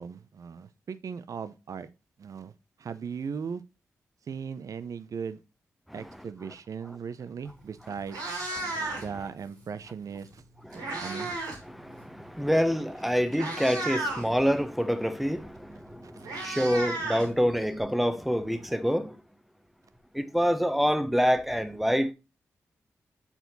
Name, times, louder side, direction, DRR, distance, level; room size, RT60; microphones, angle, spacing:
voice 1, 0.0-1.9 2.2-2.5 2.8-3.6 4.3-5.4 5.9-8.2 9.0-10.4 11.0-11.3 16.0-16.4, right 6 dB, 65° right, 0.6 m, -38 dB
Meow, 7.5-7.6 8.0-9.2 10.3-11.6 11.9-12.2 12.9-13.0 13.3-14.3 15.6-15.7 15.9-17.8, right 2 dB, 90° right, 2.1 m, -34 dB
voice 2, 8.6-9.0 10.7-11.4 11.7-19.1 20.1-22.1, equal, ahead, 1.0 m, -27 dB
7.1 x 4.3 x 3.9 m
supercardioid pair, 40°, 6 cm